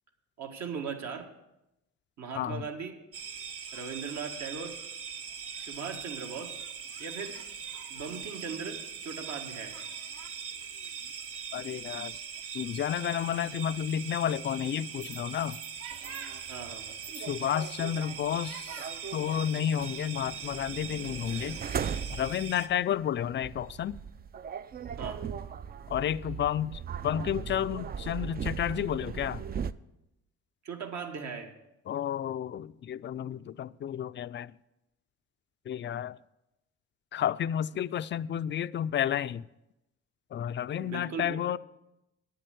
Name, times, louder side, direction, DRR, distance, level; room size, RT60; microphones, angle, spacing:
voice 1, 0.4-1.3 2.2-3.0 3.7-4.8 5.5-6.6 7.0-7.4 7.9-9.8 16.5-17.0 25.0-25.2 30.6-31.5 40.8-41.5, right 6 dB, 65° right, 1.8 m, -38 dB
sound 1, 3.1-22.7, right 7 dB, 50° right, 0.9 m, -41 dB
voice 2, 11.5-12.2 12.5-15.6 17.2-18.8 19.1-21.6 22.1-24.0 25.9-29.4 31.9-34.5 35.7-36.2 37.1-39.4 40.3-41.6, left 10 dB, 40° left, 0.4 m, -31 dB
sound 2, 15.9-29.7, right 7 dB, 30° right, 0.4 m, -39 dB
9.7 x 7.7 x 8.1 m
cardioid pair, 90°, 30 cm